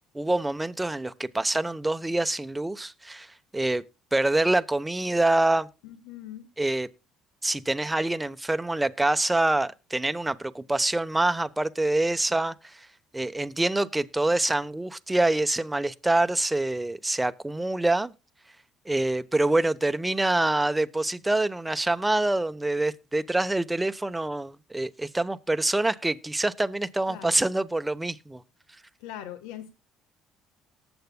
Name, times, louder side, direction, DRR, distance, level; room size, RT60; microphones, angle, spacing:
voice 1, 0.1-3.3 3.5-3.8 4.1-5.7 6.6-6.9 7.4-12.9 13.1-18.1 18.9-28.4, right 2 dB, 10° right, 0.9 m, -26 dB
voice 2, 5.8-6.5 27.1-27.4 29.0-29.7, left 11 dB, 85° left, 1.2 m, -41 dB
19.0 x 8.0 x 2.2 m
supercardioid pair, 75°, 0 cm